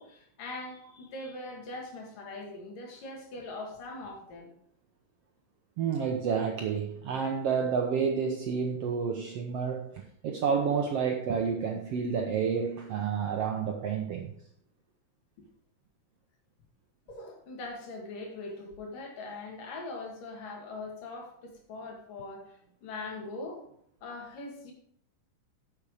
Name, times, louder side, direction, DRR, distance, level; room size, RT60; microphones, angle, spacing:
voice 1, 0.0-4.5 17.1-23.6 24.0-24.7, left 2 dB, 75° left, 2 dB, 3.7 m, -41 dB
voice 2, 5.8-14.3, right 6 dB, 70° right, 2 dB, 1.5 m, -30 dB
10.5 x 7.4 x 5.1 m, 0.66 s
omnidirectional pair, 3.9 m